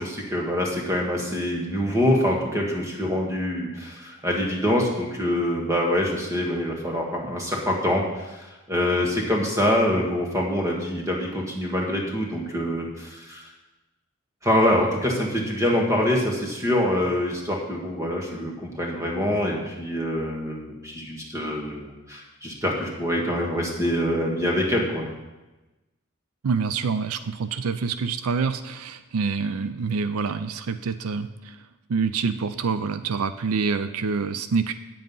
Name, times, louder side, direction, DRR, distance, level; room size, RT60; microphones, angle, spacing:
voice 1, 0.0-13.5 14.4-25.1, left 1 dB, 15° right, -1 dB, 1.6 m, -25 dB
voice 2, 26.4-31.6 31.9-34.7, right 5 dB, 85° right, 12 dB, 0.5 m, -26 dB
9.2 x 7.6 x 5.5 m, 1.1 s
head